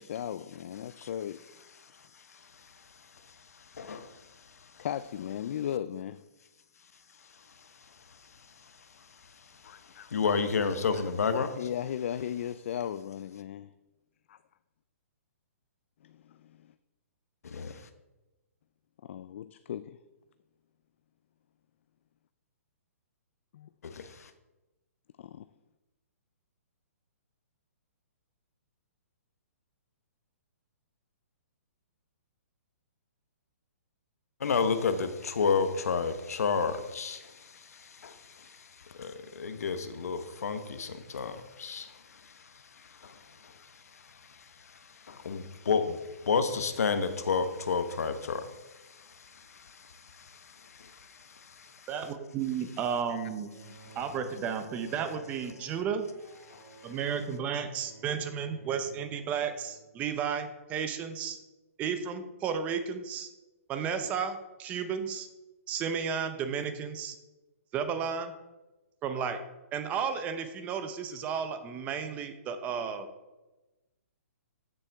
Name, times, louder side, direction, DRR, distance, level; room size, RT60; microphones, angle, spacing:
voice 1, 0.0-1.4 4.8-6.2 9.6-10.2 11.6-13.7 14.3-14.4 16.0-16.7 19.0-20.0 23.5-23.7 25.2-25.5 53.1-53.3, left 10 dB, 55° left, 0.3 m, -37 dB
voice 2, 1.8-4.9 7.2-11.7 17.4-17.9 23.8-24.3 34.4-51.9 53.7-54.0 56.5-57.0, left 5 dB, 80° left, 1.0 m, -33 dB
voice 3, 51.9-53.5 54.0-56.1 56.8-61.4 61.8-63.3 63.7-65.3 65.7-67.2 67.7-68.3 69.0-69.4 69.7-73.1, right 7 dB, 20° right, 0.7 m, -33 dB
Bowed string instrument, 53.4-60.2, right 4 dB, 85° right, 2.8 m, -53 dB
14.0 x 6.7 x 3.5 m
hypercardioid pair, 160°, 8 cm